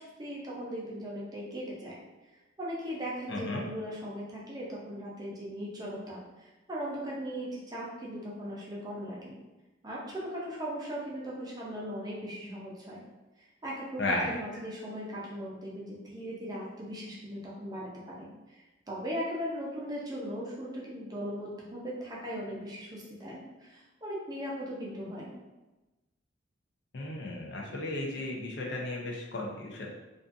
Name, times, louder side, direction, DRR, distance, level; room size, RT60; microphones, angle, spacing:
voice 1, 0.0-2.0 2.6-9.4 9.8-13.0 13.4-25.3, equal, 20° right, -5 dB, 0.5 m, -38 dB
voice 2, 3.3-3.6 14.0-14.3 26.9-29.9, left 2 dB, 60° left, -1 dB, 0.5 m, -34 dB
2.5 x 2.4 x 2.5 m, 1.1 s
head